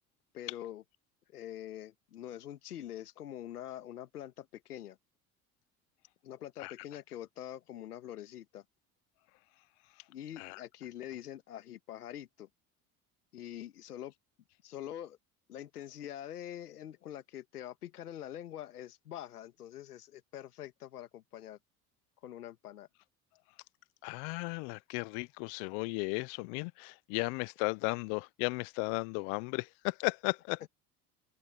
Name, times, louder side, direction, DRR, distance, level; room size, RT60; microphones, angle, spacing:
voice 1, 0.3-0.8 1.3-5.0 6.2-8.6 10.1-12.5 13.3-14.1 14.6-15.2 15.5-21.6 22.2-22.9, left 11 dB, 90° left, 2.0 m, -45 dB
voice 2, 24.0-30.6, left 31 dB, 70° left, 1.0 m, -35 dB
open air
hypercardioid pair, 65°, 44 cm